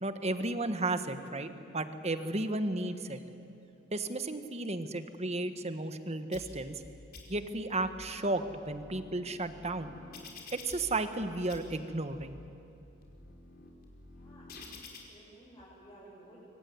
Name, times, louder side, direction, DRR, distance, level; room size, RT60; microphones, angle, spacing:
voice 1, 0.0-3.2 3.9-6.7 7.3-9.9 10.5-12.4, right 2 dB, 30° right, 9 dB, 1.4 m, -34 dB
sound 1, 6.3-6.8 7.1-7.8 8.4-11.2 11.5-12.2 12.8-15.0, left 3 dB, 50° left, 4.5 m, -50 dB
voice 2, 14.2-16.4, right 1 dB, 20° left, -10 dB, 7.9 m, -56 dB
25.0 x 24.0 x 9.7 m, 2.9 s
head